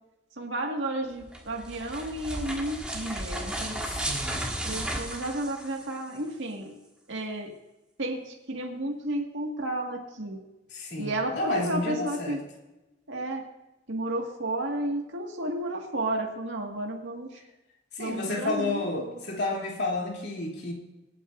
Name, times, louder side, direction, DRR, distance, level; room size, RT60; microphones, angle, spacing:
voice 1, 0.4-3.8 4.6-6.7 7.1-7.5 8.0-10.4 11.0-12.4 13.1-13.4 13.9-17.3 18.0-19.1, right 1 dB, 90° right, 0 dB, 1.8 m, -32 dB
sound 1, 1.2-6.2, right 1 dB, 5° right, 1.6 m, -34 dB
voice 2, 3.8-4.5 10.7-12.4 17.9-20.7, left 2 dB, 65° left, -1 dB, 2.8 m, -31 dB
25.0 x 9.1 x 2.5 m, 1.0 s
head